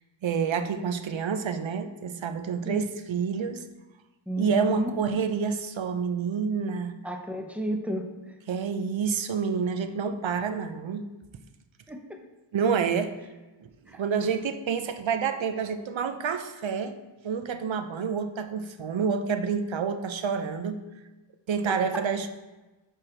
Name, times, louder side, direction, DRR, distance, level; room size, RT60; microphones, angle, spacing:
voice 1, 0.2-3.7 4.4-6.9 8.5-11.1 12.5-13.1 13.6-17.0 17.2-20.8 21.5-22.3, right 6 dB, 65° right, 9 dB, 0.6 m, -28 dB
voice 2, 4.3-4.9 7.0-8.3 11.9-12.2 13.9-14.0 21.7-21.8, equal, 5° right, 4 dB, 0.7 m, -32 dB
4.7 x 4.4 x 4.9 m, 1.1 s
wide cardioid pair, 65°, 50 cm